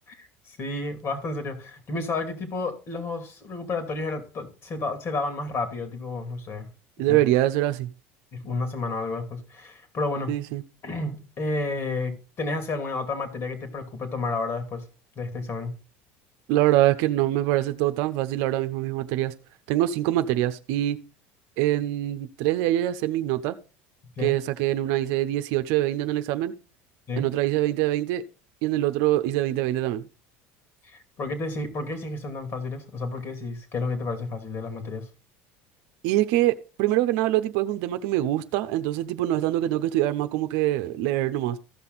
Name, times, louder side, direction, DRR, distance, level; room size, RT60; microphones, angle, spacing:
voice 1, 0.1-6.7 7.1-7.2 8.3-10.4 10.8-14.8 15.2-15.8 24.2-24.3 27.1-27.3 30.8-35.1, left 3 dB, 45° left, 2.8 m, -31 dB
voice 2, 7.0-7.9 10.3-10.6 16.5-19.3 19.7-21.0 21.6-23.6 24.2-26.5 27.2-28.2 28.6-30.0 36.0-41.6, right 14 dB, 70° right, 0.8 m, -24 dB
14.5 x 5.8 x 4.1 m
supercardioid pair, 95°, 6 cm